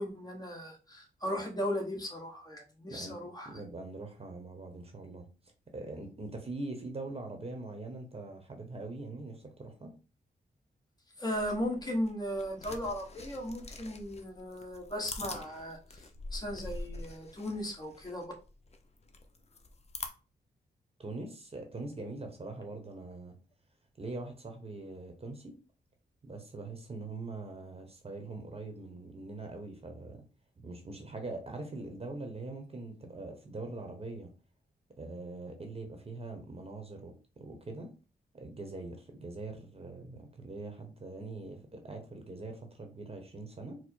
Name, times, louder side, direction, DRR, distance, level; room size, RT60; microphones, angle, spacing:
voice 1, 0.0-3.6 11.2-18.3, equal, 25° left, 1 dB, 1.3 m, -37 dB
voice 2, 3.4-5.3 5.7-9.9 21.0-23.4 24.0-25.5 26.2-30.2 30.6-34.3 35.0-37.9 38.3-43.8, right 2 dB, 35° right, 4 dB, 1.0 m, -42 dB
sound 1, 11.3-20.1, left 2 dB, 40° left, 0.7 m, -45 dB
4.5 x 2.1 x 4.4 m, 0.33 s
cardioid pair, 85°, 17 cm